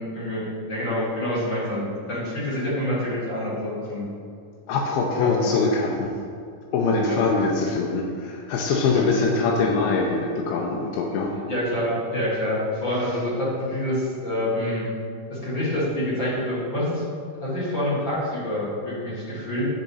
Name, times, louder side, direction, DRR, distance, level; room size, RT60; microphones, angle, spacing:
voice 1, 0.0-4.0 5.2-5.5 7.0-7.2 8.9-9.0 11.5-14.9 15.3-17.0 17.4-19.7, left 1 dB, 45° left, -8 dB, 1.8 m, -27 dB
voice 2, 4.7-6.2 6.7-11.3, left 4 dB, 85° left, -1 dB, 2.5 m, -23 dB
8.8 x 4.7 x 4.1 m, 2.3 s
omnidirectional pair, 4.3 m